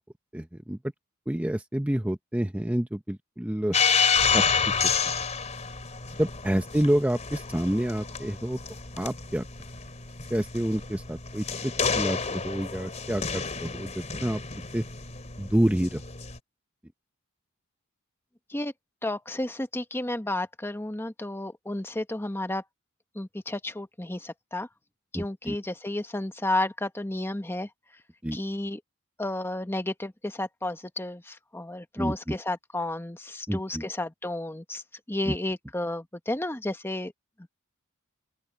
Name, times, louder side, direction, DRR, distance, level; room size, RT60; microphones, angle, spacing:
voice 1, 0.3-0.8 1.3-3.8 4.3-4.4 6.2-8.6 9.0-9.5 10.3-14.4 14.7-14.8 15.4-16.0 25.1-25.6 28.2-28.4 32.0-32.3 33.5-33.8 35.3-35.4, right 1 dB, 5° right, 0.7 m, -28 dB
sound 1, 3.7-16.4, left 5 dB, 35° left, 3.1 m, -29 dB
voice 2, 19.0-22.6 23.1-24.7 25.1-27.7 28.3-28.8 29.2-34.8 35.1-37.1, left 1 dB, 10° left, 1.0 m, -32 dB
open air
head